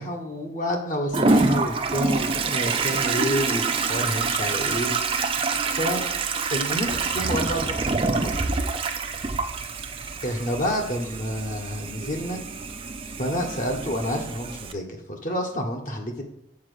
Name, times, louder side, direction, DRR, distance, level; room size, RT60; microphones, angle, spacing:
voice 1, 0.0-4.9 5.7-6.0 6.5-8.4 10.2-12.4 13.2-16.2, equal, 45° left, 1 dB, 1.1 m, -29 dB
Toilet flush, 1.1-14.7, right 4 dB, 30° right, 0.5 m, -26 dB
7.4 x 4.4 x 6.5 m, 0.77 s
head